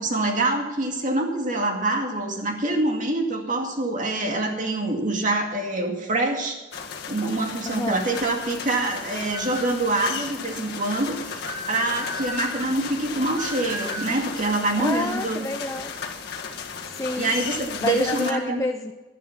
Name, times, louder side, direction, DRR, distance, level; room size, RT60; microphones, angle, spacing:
voice 1, 0.0-6.6 7.1-15.5 17.2-18.6, right 2 dB, 40° right, 2 dB, 2.2 m, -25 dB
sound 1, 6.7-18.3, left 6 dB, 55° left, 1.7 m, -35 dB
voice 2, 7.7-8.0 14.8-15.9 16.8-17.3 17.8-18.9, left 2 dB, 15° left, 6 dB, 0.5 m, -28 dB
sound 2, 9.3-9.8 11.4-12.7 13.3-14.2, right 1 dB, 20° right, 1.4 m, -34 dB
12.5 x 11.0 x 5.8 m, 1.2 s
head